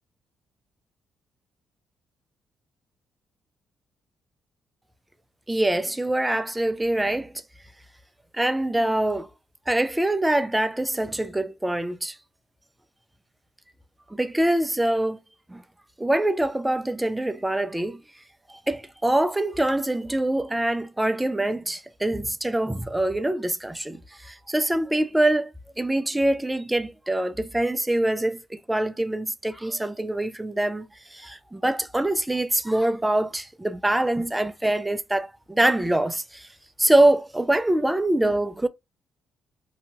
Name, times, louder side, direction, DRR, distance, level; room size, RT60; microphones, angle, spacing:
voice 1, 5.5-7.3 8.3-9.3 9.7-12.2 14.1-15.2 15.5-15.6 16.0-18.0 18.5-36.5 36.8-38.7, right 1 dB, 10° right, 0.4 m, -24 dB
2.8 x 2.2 x 2.8 m
cardioid pair, 90°, 0 cm